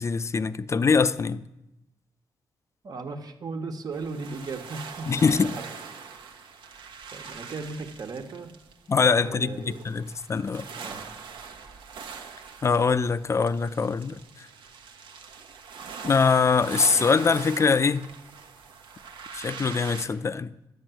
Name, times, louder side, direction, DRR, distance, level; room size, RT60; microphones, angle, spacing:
voice 1, 0.0-1.5 5.1-5.5 8.9-10.6 12.6-14.2 16.0-18.1 19.3-20.7, left 5 dB, 35° left, 0.5 m, -23 dB
voice 2, 2.8-5.6 7.1-8.6 9.1-9.8 10.7-11.1, right 4 dB, 50° right, 1.4 m, -37 dB
sound 1, 3.9-20.1, right 6 dB, 85° right, 1.3 m, -42 dB
11.5 x 7.0 x 9.1 m
cardioid pair, 100°, 8 cm